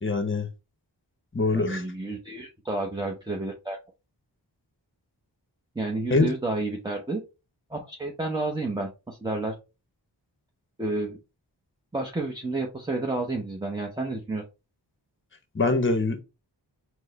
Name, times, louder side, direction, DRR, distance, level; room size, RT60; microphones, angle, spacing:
voice 1, 0.0-0.5 1.3-1.8 6.1-6.3 15.5-16.2, left 3 dB, 30° left, 0.8 m, -23 dB
voice 2, 1.5-3.8 5.7-7.2 7.7-9.5 10.8-11.2 11.9-14.4, right 2 dB, 10° right, 0.8 m, -30 dB
4.5 x 2.2 x 4.0 m
wide cardioid pair, 45°, 43 cm